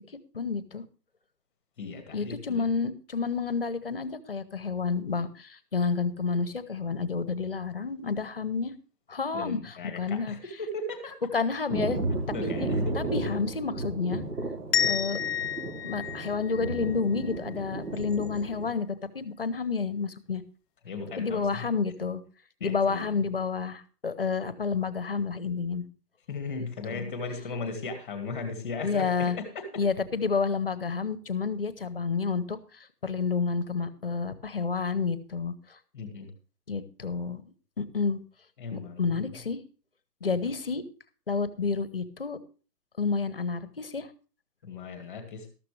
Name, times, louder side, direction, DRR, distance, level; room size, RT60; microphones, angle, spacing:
voice 1, 0.3-0.8 2.1-8.7 9.1-10.4 11.3-12.0 12.4-12.7 12.9-14.2 14.8-15.2 15.8-20.4 21.2-22.2 22.6-25.8 26.9-27.1 28.8-29.4 29.8-32.6 33.0-35.5 36.7-37.4 37.8-38.2 38.7-39.6 40.2-40.8 41.3-42.4 43.0-44.1, left 5 dB, 35° left, 14 dB, 0.9 m, -30 dB
voice 2, 1.8-2.6 9.3-11.1 12.3-12.9 20.8-21.6 22.6-23.1 26.3-29.7 35.9-36.3 38.6-39.2 40.2-40.3 44.6-45.5, left 3 dB, 5° left, 6 dB, 1.3 m, -37 dB
Thunder, 11.7-18.7, right 2 dB, 70° right, 3.2 m, -33 dB
sound 1, 14.7-17.5, left 9 dB, 85° left, 0.6 m, -31 dB
13.0 x 12.5 x 3.2 m, 0.36 s
hypercardioid pair, 175°, 48 cm